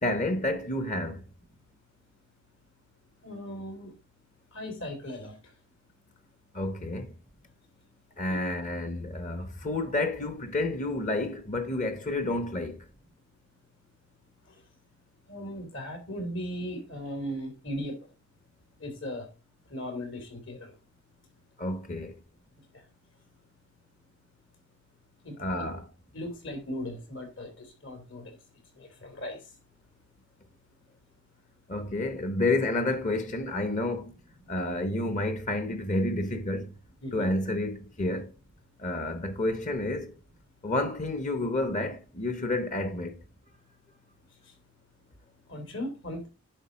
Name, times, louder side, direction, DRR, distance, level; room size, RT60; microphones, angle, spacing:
voice 1, 0.0-1.2 6.5-7.1 8.2-12.9 21.6-22.2 25.4-25.8 31.7-34.1 34.5-36.7 37.1-38.3 38.8-40.1 40.6-43.2, left 2 dB, 40° left, 1.0 m, -30 dB
voice 2, 3.2-3.9 4.5-5.4 8.3-8.4 15.3-17.9 18.8-19.3 19.7-20.7 25.2-25.7 26.1-28.3 28.8-29.4 37.0-37.3 45.5-46.3, equal, 65° left, 3.1 m, -37 dB
10.0 x 4.0 x 5.0 m
head